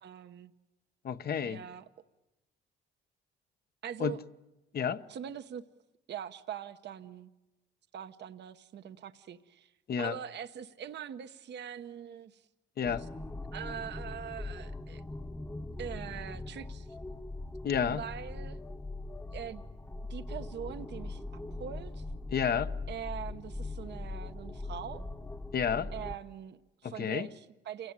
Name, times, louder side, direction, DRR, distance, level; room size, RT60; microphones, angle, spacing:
voice 1, 0.0-0.5 1.4-1.9 3.8-4.2 5.1-5.6 6.1-7.3 7.9-9.7 10.0-12.5 13.0-13.1 13.5-15.0 15.8-17.0 17.8-18.6 19.3-19.6 20.1-22.0 22.9-25.0 25.9-27.9, right 8 dB, 60° right, 1.0 m, -42 dB
voice 2, 1.0-1.6 4.0-4.1 4.7-5.0 9.9-10.1 12.8-13.0 17.6-18.0 22.3-22.7 25.5-25.9 26.8-27.3, left 7 dB, 50° left, 1.0 m, -30 dB
sound 1, 12.8-26.2, left 2 dB, 10° left, 1.1 m, -41 dB
28.5 x 17.0 x 9.7 m
cardioid pair, 90°, 20 cm